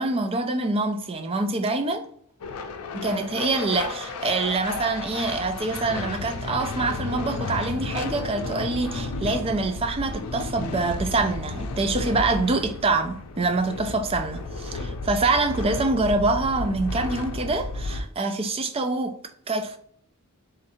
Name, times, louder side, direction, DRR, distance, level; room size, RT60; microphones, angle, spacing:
voice 1, 0.0-2.0 2.9-19.2 19.5-19.8, right 3 dB, 25° right, 0.4 m, -25 dB
sound 1, 2.4-18.0, left 3 dB, 90° left, 0.5 m, -33 dB
3.8 x 2.6 x 4.2 m
head